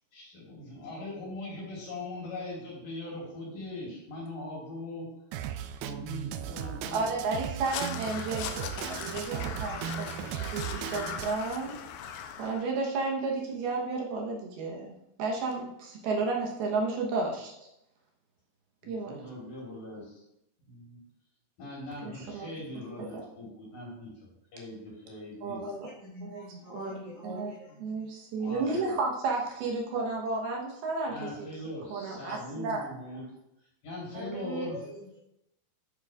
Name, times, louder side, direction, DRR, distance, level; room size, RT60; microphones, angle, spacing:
voice 1, 0.1-5.1 5.8-7.0 18.8-20.2 20.6-21.0 21.6-24.1 24.5-25.6 28.4-29.0 31.1-33.2 33.8-34.8, left 2 dB, 55° left, -4 dB, 5.2 m, -40 dB
Drum kit, 5.3-11.3, right 10 dB, 90° right, 2.1 m, -37 dB
voice 2, 6.8-10.1 10.5-11.8 12.4-14.9 15.2-17.7 18.9-19.2 22.0-22.5 23.0-23.1 25.4-25.6 26.2-26.4 26.7-27.0 27.2-27.5 27.8-31.5 31.9-32.9 34.1-34.7, right 3 dB, 75° right, -1 dB, 2.9 m, -32 dB
Crow, 7.6-12.6, left 8 dB, 80° left, 2.0 m, -39 dB
voice 3, 25.6-27.8 28.4-28.6 34.8-35.2, left 1 dB, 50° right, -5 dB, 2.2 m, -43 dB
11.0 x 8.9 x 2.4 m, 0.83 s
omnidirectional pair, 4.8 m